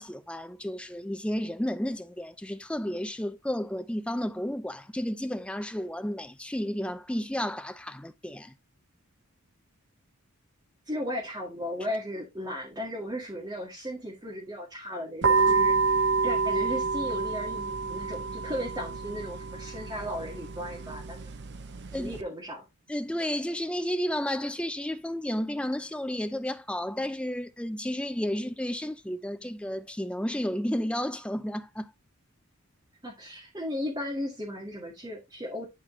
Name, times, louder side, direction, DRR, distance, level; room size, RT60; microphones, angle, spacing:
voice 1, 0.0-8.5 21.9-22.1 22.9-31.9, equal, 5° left, 0.4 m, -32 dB
voice 2, 10.9-21.3 21.9-22.7 33.0-35.7, equal, 20° right, 1.8 m, -36 dB
sound 1, 15.2-22.2, right 4 dB, 50° right, 0.7 m, -28 dB
11.0 x 4.2 x 3.1 m
head